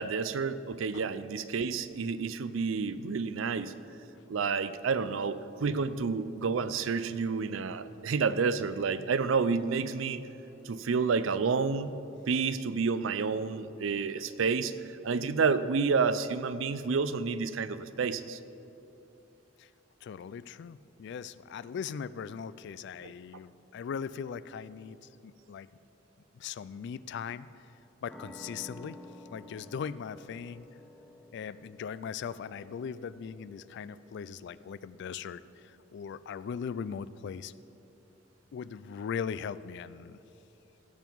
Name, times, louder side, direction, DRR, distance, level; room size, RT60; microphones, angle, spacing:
voice 1, 0.0-3.7 4.3-10.2 10.6-12.0 12.3-14.7 15.0-18.4, right 5 dB, 80° right, 13 dB, 0.5 m, -29 dB
voice 2, 20.0-25.7 26.3-27.5 28.0-29.0 29.3-30.7 31.3-37.5 38.5-40.2, left 7 dB, 60° left, 17 dB, 0.3 m, -39 dB
sound 1, 28.1-35.3, left 1 dB, ahead, 0.9 m, -53 dB
16.0 x 7.1 x 4.6 m, 2.8 s
head